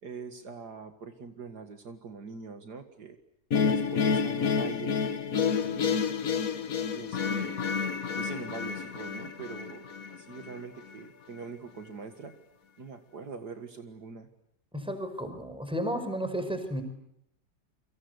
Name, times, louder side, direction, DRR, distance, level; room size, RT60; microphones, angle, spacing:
voice 1, 0.0-3.2 3.6-5.0 5.6-6.1 6.9-7.7 8.1-12.3 12.8-14.3, right 4 dB, 60° right, 7 dB, 2.4 m, -43 dB
sound 1, 3.5-10.6, left 6 dB, 50° left, 1.6 m, -29 dB
voice 2, 14.7-16.8, equal, 5° right, 8 dB, 4.7 m, -33 dB
29.5 x 25.0 x 8.1 m, 0.75 s
omnidirectional pair, 1.9 m